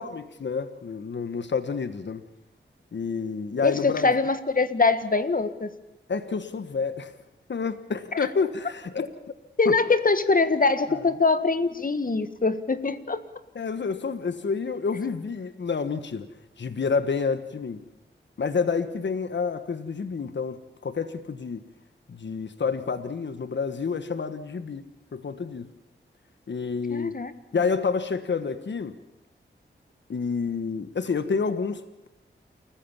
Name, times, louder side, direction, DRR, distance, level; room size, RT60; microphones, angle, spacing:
voice 1, 0.0-2.2 2.9-4.1 6.1-7.1 7.5-9.1 9.6-9.8 10.9-11.0 13.5-16.3 16.6-17.8 18.4-21.6 22.1-24.8 25.1-25.7 26.5-27.1 27.5-29.0 30.1-32.1, left 5 dB, 65° left, 11 dB, 1.3 m, -29 dB
voice 2, 3.6-5.7 8.1-8.3 9.6-13.2 26.9-27.3, left 3 dB, 45° left, 11 dB, 1.7 m, -23 dB
28.5 x 15.0 x 7.3 m, 0.95 s
cardioid pair, 55°, 20 cm